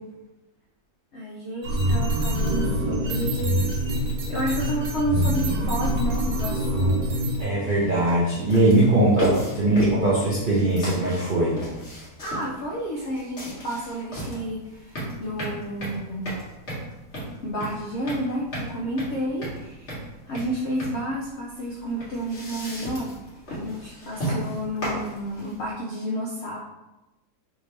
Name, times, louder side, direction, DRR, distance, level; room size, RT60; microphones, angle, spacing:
voice 1, 1.1-3.8 4.3-6.9 12.2-16.4 17.4-20.0 20.3-23.2 23.5-26.6, equal, 75° left, -5 dB, 0.6 m, -31 dB
sound 1, 1.6-7.5, equal, 80° right, 1.4 m, -25 dB
voice 2, 7.4-11.6, right 2 dB, 65° right, -7 dB, 0.5 m, -21 dB
sound 2, 7.7-25.7, equal, 40° left, 1.4 m, -34 dB
3.6 x 2.7 x 3.2 m, 1.0 s
omnidirectional pair, 1.8 m